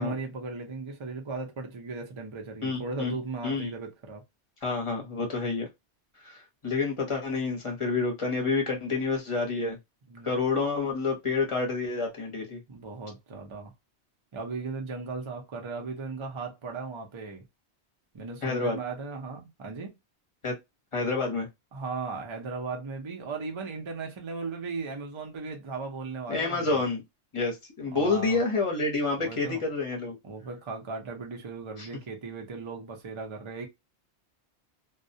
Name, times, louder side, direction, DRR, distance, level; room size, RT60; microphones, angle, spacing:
voice 1, 0.0-4.2 10.1-10.3 12.7-13.7 14.3-17.4 18.1-19.9 21.7-26.8 27.9-28.4 29.2-29.6 30.2-33.7, right 4 dB, 35° right, 0.5 m, -37 dB
voice 2, 2.6-3.1 3.4-3.7 4.6-5.7 6.2-9.8 10.2-12.6 18.4-18.8 20.4-20.6 20.9-21.5 26.3-27.0 27.3-30.2 31.8-31.9, left 3 dB, 30° left, 0.8 m, -28 dB
2.3 x 2.1 x 2.6 m
omnidirectional pair, 1.2 m